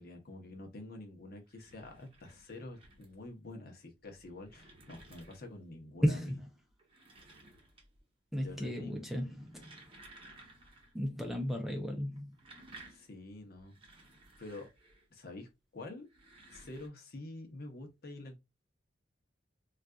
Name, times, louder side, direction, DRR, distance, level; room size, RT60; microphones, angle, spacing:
voice 1, 0.0-6.4 8.4-9.2 12.9-13.7 14.4-14.7 15.1-16.1 16.5-18.4, left 2 dB, 55° left, 0.8 m, -47 dB
sound 1, 1.3-3.3 4.0-5.7 6.7-8.1 8.4-8.9 9.3-11.0 11.3-11.4 12.1-15.2 16.0-16.9, right 2 dB, 30° right, 0.8 m, -57 dB
voice 2, 6.0-6.4 8.3-9.8 10.9-12.3, equal, ahead, 0.5 m, -34 dB
3.9 x 2.4 x 2.3 m
head